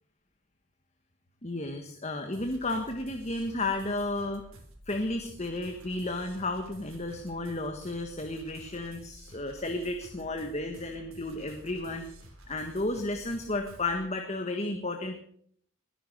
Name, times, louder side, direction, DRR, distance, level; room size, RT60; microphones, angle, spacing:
voice 1, 1.4-4.4 4.9-12.0 12.5-15.1, left 2 dB, 30° left, 5 dB, 1.5 m, -33 dB
sound 1, 2.3-14.0, right 1 dB, 65° right, 3.7 m, -51 dB
21.0 x 9.9 x 6.6 m, 0.64 s
head